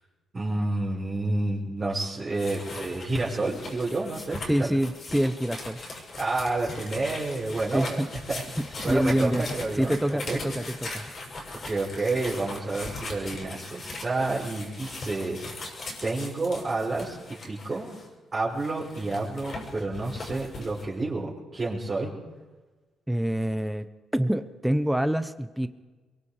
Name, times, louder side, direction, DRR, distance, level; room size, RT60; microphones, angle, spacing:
voice 1, 0.3-4.7 6.2-8.0 8.3-8.4 8.8-10.4 11.7-15.6 16.0-17.2 17.5-18.0 18.3-22.1, right 2 dB, 30° right, -7 dB, 5.4 m, -29 dB
sound 1, 2.3-18.1 18.6-20.8, left 2 dB, 45° left, 7.4 m, -39 dB
voice 2, 4.5-5.8 7.7-8.1 8.6-9.5 9.8-11.0 23.1-23.8 24.1-25.7, right 1 dB, 5° right, 11 dB, 1.0 m, -26 dB
23.5 x 23.0 x 5.1 m, 1.3 s
cardioid pair, 90°, 0 cm